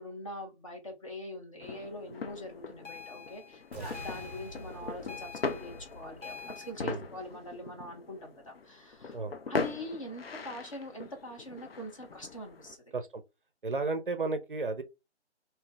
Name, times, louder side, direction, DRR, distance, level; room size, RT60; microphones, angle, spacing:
voice 1, 0.0-9.2 9.5-12.9, left 1 dB, 30° left, 0.9 m, -43 dB
sound 1, 1.6-12.8, left 4 dB, 55° left, 0.6 m, -41 dB
sound 2, 2.8-6.7, left 7 dB, 85° left, 1.5 m, -47 dB
sound 3, 3.7-7.7, equal, 10° right, 0.7 m, -49 dB
voice 2, 13.6-14.8, right 3 dB, 45° right, 0.6 m, -33 dB
3.6 x 2.8 x 3.3 m
figure-of-eight pair, 160°, 35 cm